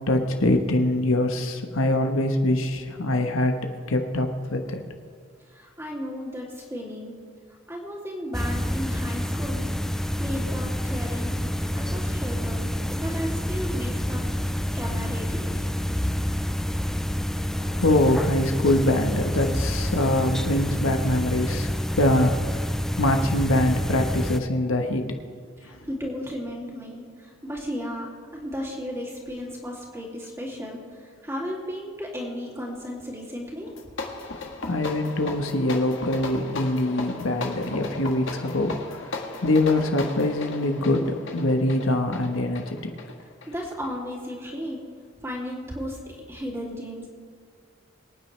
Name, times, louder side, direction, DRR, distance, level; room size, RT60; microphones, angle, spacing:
voice 1, 0.1-3.6 3.9-4.8 17.4-21.7 22.0-25.0 34.7-38.7 39.4-42.9, left 1 dB, 85° left, 5 dB, 1.3 m, -24 dB
voice 2, 5.5-7.1 7.5-11.4 11.7-15.7 25.6-34.0 43.5-44.8 45.2-47.1, equal, 15° right, -3 dB, 2.7 m, -35 dB
sound 1, 8.3-24.4, equal, ahead, 0.3 m, -28 dB
sound 2, 33.7-44.0, left 3 dB, 70° left, 1.5 m, -36 dB
24.0 x 9.4 x 3.4 m, 2.1 s
head